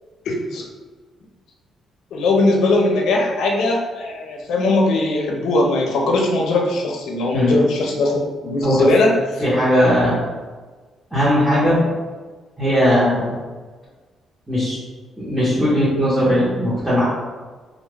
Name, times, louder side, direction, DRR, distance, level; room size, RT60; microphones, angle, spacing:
voice 1, 0.3-0.6 2.1-9.4, left 2 dB, 80° left, 0 dB, 0.6 m, -19 dB
voice 2, 9.4-10.2 11.1-11.9 12.6-13.3 14.5-14.8 15.2-17.0, equal, 5° right, -11 dB, 1.1 m, -18 dB
2.4 x 2.2 x 3.4 m, 1.4 s
cardioid pair, 90°, 0 cm